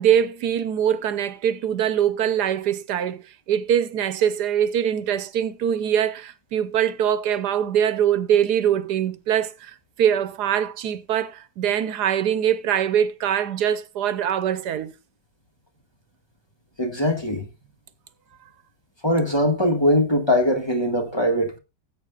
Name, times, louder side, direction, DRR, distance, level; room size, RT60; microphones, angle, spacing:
voice 1, 0.0-14.9, right 9 dB, 85° right, 1.4 m, -23 dB
voice 2, 16.8-17.5 19.0-21.6, left 1 dB, 15° left, 1.5 m, -21 dB
18.5 x 8.2 x 2.4 m
omnidirectional pair, 1.7 m